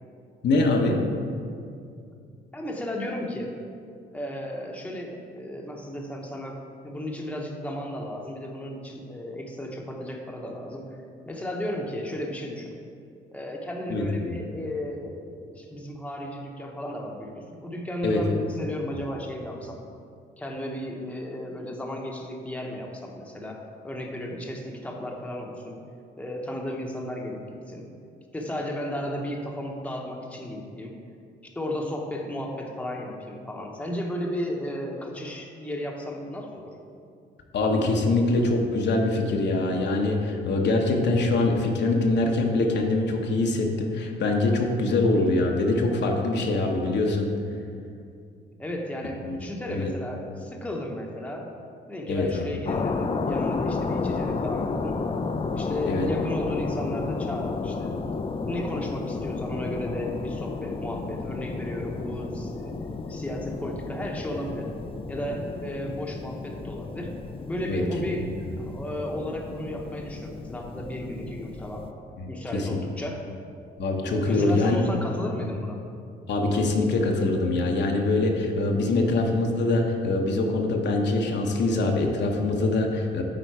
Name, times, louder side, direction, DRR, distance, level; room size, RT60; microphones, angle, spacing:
voice 1, 0.4-1.0 13.9-14.3 18.0-18.2 37.5-47.3 49.2-49.4 49.7-49.9 52.1-52.5 55.9-56.1 67.7-67.8 72.2-72.8 73.8-74.8 76.3-83.2, left 2 dB, 60° left, 1 dB, 0.9 m, -24 dB
voice 2, 2.5-3.5 4.1-6.6 6.8-10.8 11.2-12.7 13.3-19.8 20.4-25.8 26.2-27.4 27.7-27.9 28.3-30.9 31.5-36.7 48.6-51.5 51.9-55.0 55.5-57.9 58.5-64.7 65.1-67.1 67.5-71.9 72.3-73.2 74.2-75.8, left 1 dB, 5° left, 0 dB, 0.9 m, -34 dB
sound 1, 52.7-71.9, left 4 dB, 30° left, 0.4 m, -32 dB
9.0 x 3.9 x 4.6 m, 2.4 s
cardioid pair, 90°, 20 cm